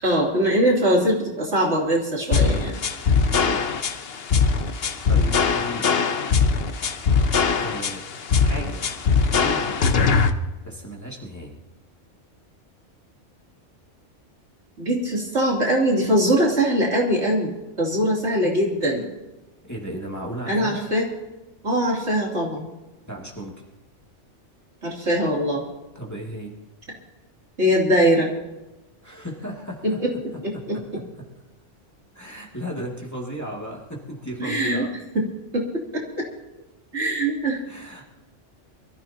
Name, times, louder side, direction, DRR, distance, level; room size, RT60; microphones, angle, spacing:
voice 1, 0.0-2.8 14.8-17.5 17.8-19.1 20.5-21.1 21.6-22.6 24.8-25.6 27.6-28.3 29.8-30.8 34.4-34.8 35.5-36.3 36.9-37.6, equal, 65° right, -3 dB, 3.5 m, -22 dB
sound 1, 2.3-10.3, left 5 dB, 55° left, 1.1 m, -21 dB
voice 2, 3.2-3.6 5.1-6.0 7.6-8.0 8.4-8.9 9.3-10.2 10.6-11.6 19.6-20.9 23.1-23.5 25.9-26.5 29.0-30.0 30.5-31.2 32.1-34.9 37.6-38.0, equal, 15° left, -2 dB, 2.4 m, -35 dB
24.0 x 14.0 x 2.9 m, 1.0 s
omnidirectional pair, 1.3 m